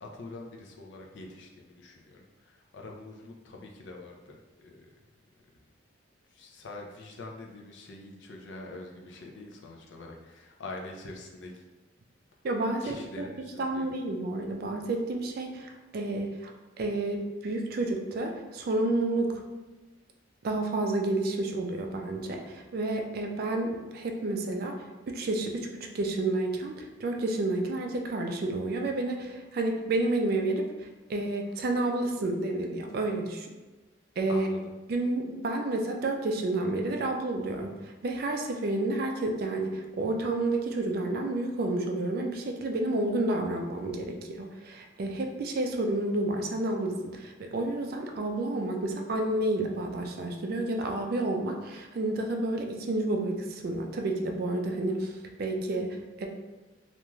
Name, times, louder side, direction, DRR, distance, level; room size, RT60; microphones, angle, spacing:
voice 1, 0.0-4.9 6.3-11.6 12.8-13.9 34.3-34.6, left 2 dB, 65° left, 1 dB, 0.4 m, -45 dB
voice 2, 12.4-13.2 13.6-16.5 16.8-19.4 20.4-24.8 25.1-33.5 34.2-34.5 34.9-55.1 55.4-56.3, right 2 dB, 50° right, 3 dB, 0.3 m, -30 dB
3.0 x 2.4 x 2.3 m, 1.2 s
head